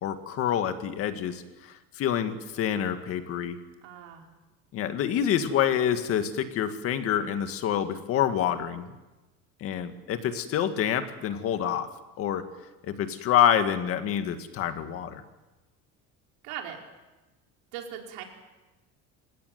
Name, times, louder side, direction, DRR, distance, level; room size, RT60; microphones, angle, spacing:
voice 1, 0.0-3.6 4.7-9.0 9.6-11.9 12.2-12.4 12.8-15.2, left 9 dB, 45° left, 8 dB, 2.0 m, -27 dB
voice 2, 3.8-4.3 16.4-16.8 17.7-18.2, right 9 dB, 80° right, 2 dB, 4.8 m, -39 dB
28.0 x 16.5 x 9.3 m, 1.1 s
cardioid pair, 170°, 34 cm